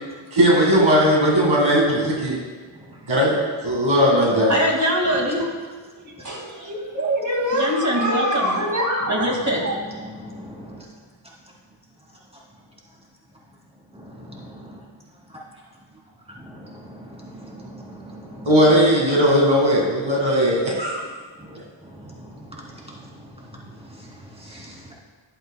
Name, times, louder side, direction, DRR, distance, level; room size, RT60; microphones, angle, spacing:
voice 1, 0.3-2.4 3.1-4.5 18.5-21.0, equal, 70° right, -2 dB, 2.0 m, -18 dB
voice 2, 4.5-5.4 6.0-9.8, equal, 35° right, 0 dB, 2.3 m, -22 dB
voice 3, 10.0-10.8 13.9-14.8 16.4-18.5 21.4-23.6 24.0-24.1 24.4-24.9, equal, 10° right, -4 dB, 2.9 m, -41 dB
12.5 x 10.5 x 2.3 m, 1.4 s
cardioid pair, 45°, 48 cm